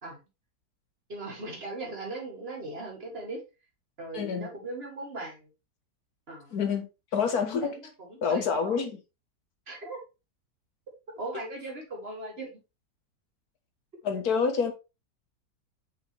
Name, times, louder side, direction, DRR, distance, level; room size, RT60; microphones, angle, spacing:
voice 1, 1.1-3.4 4.0-5.5 6.3-6.6 7.3-8.8 9.7-10.0 11.2-12.6, right 2 dB, 35° right, 2.8 m, -39 dB
voice 2, 4.1-4.5 6.5-6.9 7.1-7.8 8.2-8.9 14.0-14.7, left 6 dB, 60° left, 1.7 m, -27 dB
6.6 x 5.4 x 3.4 m
omnidirectional pair, 1.9 m